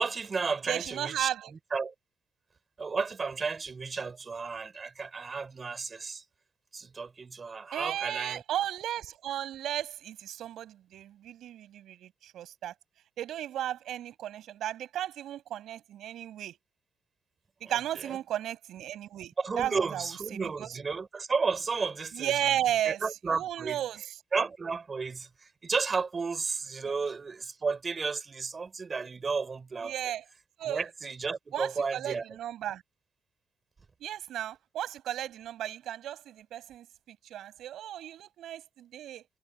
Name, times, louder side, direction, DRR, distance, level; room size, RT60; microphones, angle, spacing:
voice 1, 0.0-1.3 1.7-1.9 2.8-6.2 6.7-8.4 18.0-18.2 19.4-22.6 22.9-23.8 24.3-29.9 30.6-32.2, right 4 dB, 35° right, 4.3 m, -33 dB
voice 2, 0.7-1.5 7.7-12.7 13.2-16.6 17.6-20.7 22.1-23.0 23.3-24.2 26.8-26.9 29.8-30.2 30.6-30.8 31.5-32.8 34.0-39.3, right 12 dB, 75° right, 7.2 m, -34 dB
cardioid pair, 90°, 0 cm